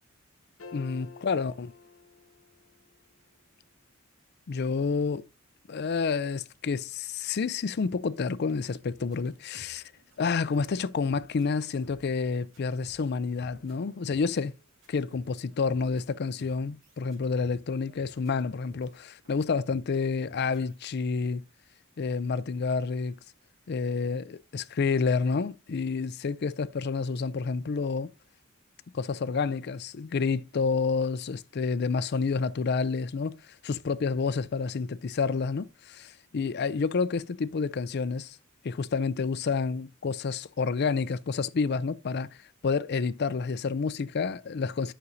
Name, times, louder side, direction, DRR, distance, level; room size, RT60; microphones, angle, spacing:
sound 1, 0.6-2.9, left 5 dB, 75° left, 1.0 m, -49 dB
voice 1, 0.7-1.7 4.5-5.3 5.7-9.8 10.2-14.5 14.9-21.4 22.0-23.1 23.7-28.1 28.9-33.4 33.6-38.4 38.6-42.3 42.6-44.9, left 5 dB, 55° left, 0.4 m, -29 dB
sound 2, 8.9-12.1 12.4-19.0 19.2-20.8, right 1 dB, 70° right, 3.5 m, -56 dB
9.6 x 6.1 x 2.6 m
head